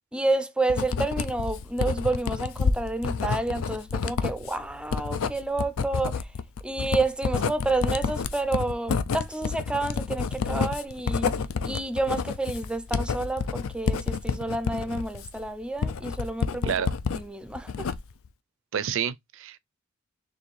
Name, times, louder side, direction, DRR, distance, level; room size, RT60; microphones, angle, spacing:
voice 1, 0.1-6.2 6.6-11.3 11.6-16.7 17.2-17.9, right 2 dB, 5° right, 0.4 m, -29 dB
Writing, 0.7-17.2 17.6-18.3, left 5 dB, 85° left, 0.4 m, -29 dB
voice 2, 18.7-19.6, right 8 dB, 65° right, 0.4 m, -29 dB
4.2 x 3.1 x 3.1 m
head